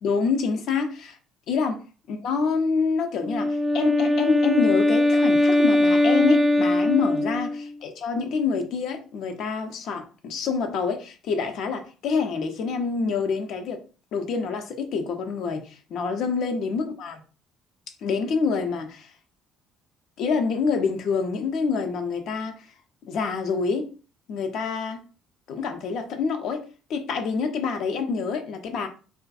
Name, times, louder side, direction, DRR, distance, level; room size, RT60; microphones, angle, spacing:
voice 1, 0.0-1.2 1.5-1.8 2.1-13.8 14.1-17.2 18.0-19.1 20.2-22.7 23.1-23.9 24.3-25.0 25.5-26.6 26.9-28.9, left 5 dB, 65° left, 5 dB, 0.4 m, -26 dB
Wind instrument woodwind instrument, 3.2-7.7, left 1 dB, 5° right, 0.3 m, -21 dB
2.4 x 2.2 x 2.4 m, 0.36 s
hypercardioid pair, 55°, 0 cm